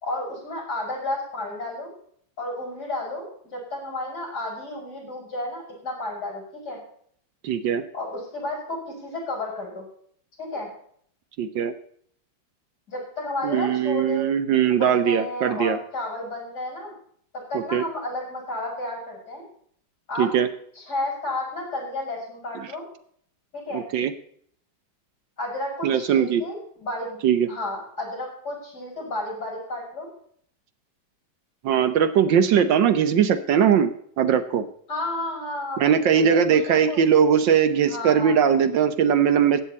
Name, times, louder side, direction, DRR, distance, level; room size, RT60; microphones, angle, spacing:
voice 1, 0.0-1.9 2.4-6.8 7.9-9.9 10.4-10.7 12.9-14.3 14.7-16.9 17.3-19.4 20.1-20.3 20.8-22.8 23.5-23.8 25.4-27.2 27.5-30.1 34.9-37.0 37.8-38.4, left 2 dB, 55° left, -2 dB, 6.4 m, -32 dB
voice 2, 7.4-7.8 11.4-11.7 13.4-15.8 17.5-17.8 20.2-20.5 23.7-24.1 25.8-26.4 27.2-27.5 31.6-33.9 34.2-34.6 35.8-39.6, right 8 dB, 75° right, 11 dB, 1.5 m, -20 dB
15.0 x 9.2 x 4.2 m, 0.62 s
omnidirectional pair, 2.1 m